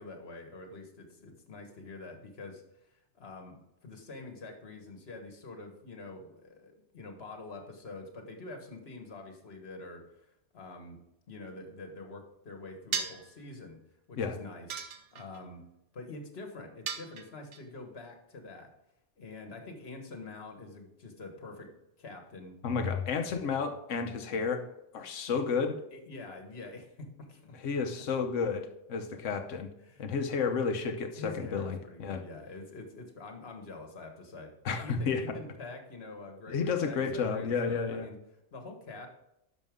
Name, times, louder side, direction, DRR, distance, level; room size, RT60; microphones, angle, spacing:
voice 1, 0.0-2.6 2.9-11.0 11.3-13.8 14.1-14.8 15.1-15.7 15.9-18.7 19.2-21.7 22.0-22.6 25.9-27.6 29.1-29.2 29.8-30.0 31.2-38.2 38.5-39.1, left 3 dB, 60° left, 4 dB, 1.7 m, -46 dB
sound 1, 12.9-13.3 14.7-15.4 16.9-17.6, right 6 dB, 75° right, 1.1 m, -36 dB
voice 2, 22.6-24.6 24.9-25.8 27.6-29.7 30.0-32.2 34.6-35.2 36.5-38.1, left 5 dB, 85° left, 7 dB, 1.3 m, -31 dB
11.0 x 6.6 x 3.6 m, 0.82 s
omnidirectional pair, 1.2 m